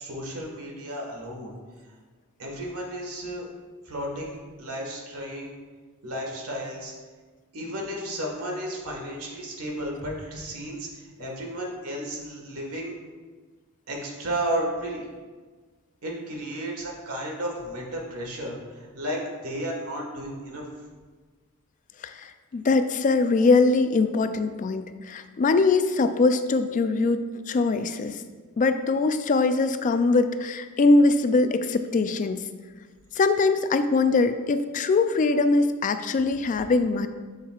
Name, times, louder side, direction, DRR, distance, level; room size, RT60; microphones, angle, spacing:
voice 1, 0.0-1.6 2.4-3.5 3.8-5.5 6.0-6.9 7.5-13.0 13.9-15.1 16.0-20.7, right 1 dB, 80° right, 0 dB, 1.6 m, -33 dB
voice 2, 22.0-28.2 28.6-32.4 33.1-37.1, left 3 dB, 35° left, 10 dB, 0.3 m, -22 dB
7.2 x 7.2 x 2.4 m, 1.4 s
head